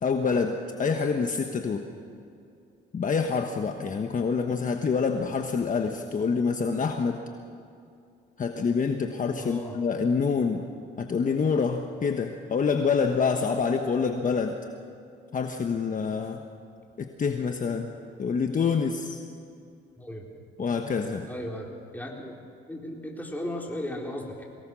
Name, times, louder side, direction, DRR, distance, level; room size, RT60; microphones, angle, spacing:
voice 1, 0.0-1.8 2.9-7.2 8.4-10.6 11.0-14.6 15.3-16.4 17.0-17.9 18.2-19.2 20.6-21.3, left 5 dB, 40° left, 5 dB, 1.3 m, -26 dB
voice 2, 9.4-9.8 20.0-20.3 21.3-21.7 21.9-22.3 22.7-24.4, left 1 dB, 10° left, -1 dB, 4.1 m, -36 dB
23.0 x 18.0 x 6.3 m, 2.5 s
cardioid pair, 90°, 20 cm